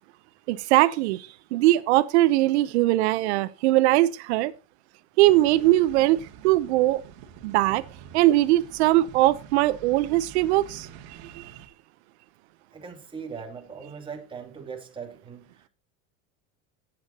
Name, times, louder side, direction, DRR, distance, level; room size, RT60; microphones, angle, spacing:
voice 1, 0.5-4.5 5.2-7.0 7.4-7.8 8.1-10.9 11.3-11.4, right 16 dB, 90° right, 0.8 m, -21 dB
sound 1, 5.2-11.7, right 8 dB, 65° right, 2.0 m, -46 dB
voice 2, 12.7-15.7, right 6 dB, 15° right, 2.6 m, -40 dB
18.0 x 8.8 x 2.8 m
cardioid pair, 150°, 32 cm